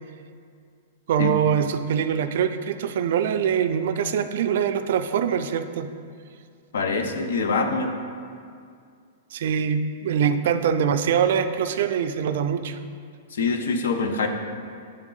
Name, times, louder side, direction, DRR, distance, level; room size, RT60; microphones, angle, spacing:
voice 1, 1.1-5.9 9.3-12.8, right 8 dB, 55° right, 9 dB, 0.3 m, -23 dB
voice 2, 6.7-8.0 13.3-14.3, left 4 dB, 80° left, 6 dB, 0.6 m, -24 dB
8.6 x 3.6 x 3.9 m, 2.3 s
supercardioid pair, 175°, 0 cm